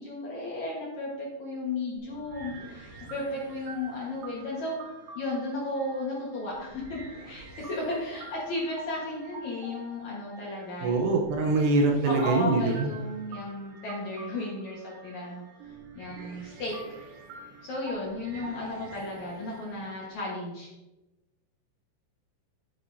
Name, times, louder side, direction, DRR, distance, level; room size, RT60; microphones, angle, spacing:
voice 1, 0.0-4.8 5.1-7.0 7.3-11.1 12.0-17.0 17.6-20.7, left 2 dB, 65° left, -4 dB, 1.8 m, -34 dB
sound 1, 2.0-20.1, right 2 dB, 50° right, 3.0 m, -47 dB
voice 2, 10.8-12.9, right 3 dB, 75° right, 2 dB, 2.7 m, -24 dB
10.0 x 10.0 x 2.7 m, 1.0 s
omnidirectional pair, 5.7 m